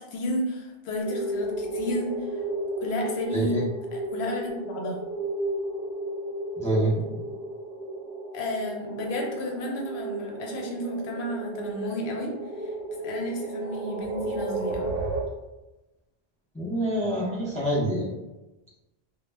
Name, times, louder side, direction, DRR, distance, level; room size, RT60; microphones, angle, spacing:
voice 1, 0.1-2.1 2.8-3.5 3.9-5.0 8.3-12.3 13.0-14.9, left 1 dB, 80° left, 0 dB, 0.8 m, -32 dB
sound 1, 1.0-15.2, right 2 dB, 65° right, 0.8 m, -33 dB
voice 2, 3.3-3.6 6.6-6.9 16.5-18.1, right 1 dB, 10° left, -7 dB, 0.4 m, -26 dB
2.1 x 2.0 x 3.2 m, 1.0 s
omnidirectional pair, 1.1 m